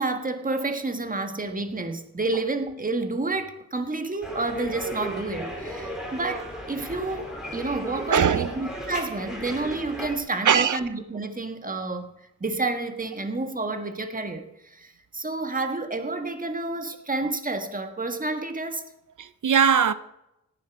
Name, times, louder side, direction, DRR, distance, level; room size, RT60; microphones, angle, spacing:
voice 1, 0.0-18.8, right 3 dB, 25° right, 1.6 m, -30 dB
sound 1, 4.2-10.2, equal, ahead, 4.5 m, -35 dB
voice 2, 8.1-8.6 10.4-10.8 19.2-19.9, right 7 dB, 75° right, 0.7 m, -20 dB
17.5 x 11.0 x 6.1 m
wide cardioid pair, 120°, 31 cm